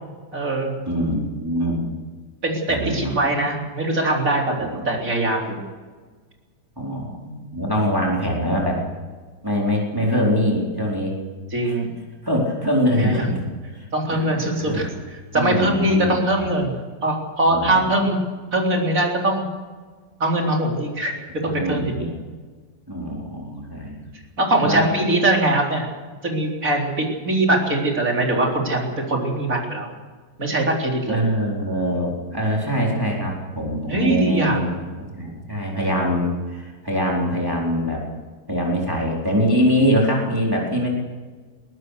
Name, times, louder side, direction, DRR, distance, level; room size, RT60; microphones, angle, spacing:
voice 1, 0.3-0.8 2.4-5.6 11.5-11.9 13.0-13.3 13.9-14.9 15.3-18.2 18.5-19.4 20.2-22.0 24.4-25.9 26.2-29.9 30.4-31.2 33.9-34.6, right 1 dB, 50° right, 0 dB, 4.3 m, -22 dB
voice 2, 0.9-1.8 2.7-3.1 4.6-4.8 6.8-8.8 9.4-11.1 11.6-11.8 12.2-14.9 15.3-16.5 17.5-17.7 21.4-22.1 22.9-24.1 24.6-24.9 31.1-34.7 35.0-38.0 38.5-40.9, equal, 10° right, -3 dB, 4.2 m, -23 dB
22.0 x 18.0 x 6.7 m, 1.4 s
omnidirectional pair, 1.9 m